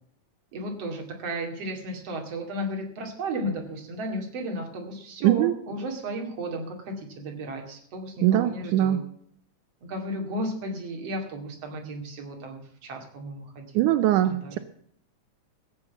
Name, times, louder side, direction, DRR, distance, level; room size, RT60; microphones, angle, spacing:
voice 1, 0.5-9.0 9.9-13.9 14.2-14.6, right 1 dB, 55° right, 2 dB, 3.4 m, -34 dB
voice 2, 8.2-9.0 13.8-14.6, right 13 dB, 85° right, 11 dB, 2.2 m, -21 dB
15.5 x 8.0 x 7.1 m, 0.65 s
omnidirectional pair, 3.5 m